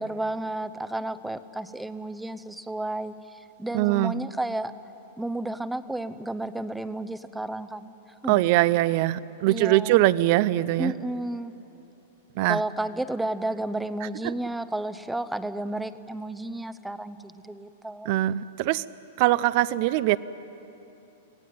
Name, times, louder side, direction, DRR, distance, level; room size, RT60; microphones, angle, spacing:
voice 1, 0.0-4.7 5.2-7.9 8.2-8.4 9.4-10.0 10.8-11.5 12.5-18.1, right 1 dB, 5° right, 13 dB, 0.8 m, -32 dB
voice 2, 3.7-4.1 8.3-10.9 12.4-12.6 14.2-14.3 18.1-18.8 19.2-20.2, right 16 dB, 50° right, 18 dB, 0.6 m, -22 dB
25.5 x 17.5 x 9.4 m, 2.9 s
hypercardioid pair, 130°, 0 cm